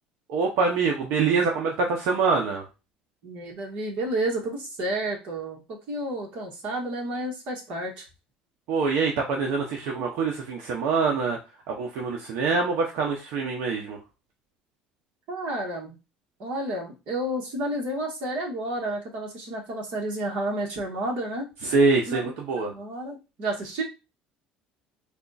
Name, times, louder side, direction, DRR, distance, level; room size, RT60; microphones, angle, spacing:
voice 1, 0.3-2.6 8.7-11.4 11.7-14.0 21.6-22.7, right 4 dB, 65° right, 0 dB, 0.8 m, -25 dB
voice 2, 3.2-5.6 5.9-8.1 15.3-16.0 16.4-21.5 22.1-23.8, right 1 dB, 50° right, 0 dB, 1.5 m, -31 dB
3.5 x 2.4 x 4.0 m, 0.28 s
cardioid pair, 170°, 3 cm